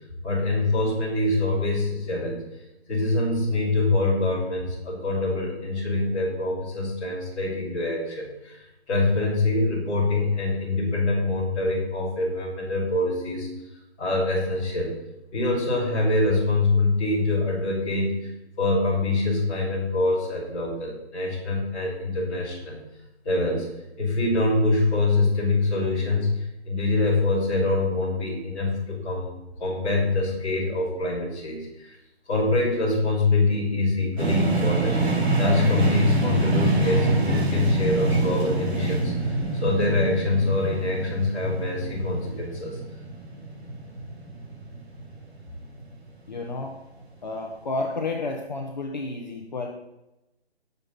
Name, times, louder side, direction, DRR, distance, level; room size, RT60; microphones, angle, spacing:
voice 1, 0.2-2.4 2.9-13.5 14.0-14.9 15.3-18.3 18.6-22.8 23.2-23.7 24.0-29.3 29.6-32.0 32.3-35.1 35.4-42.8, left 2 dB, 10° left, -11 dB, 3.4 m, -24 dB
sound 1, 34.2-46.0, right 3 dB, 70° right, 3.5 m, -26 dB
voice 2, 46.3-46.8 47.2-49.7, left 3 dB, 40° left, 1 dB, 1.1 m, -31 dB
18.5 x 7.0 x 4.2 m, 0.95 s
hypercardioid pair, 175°, 33 cm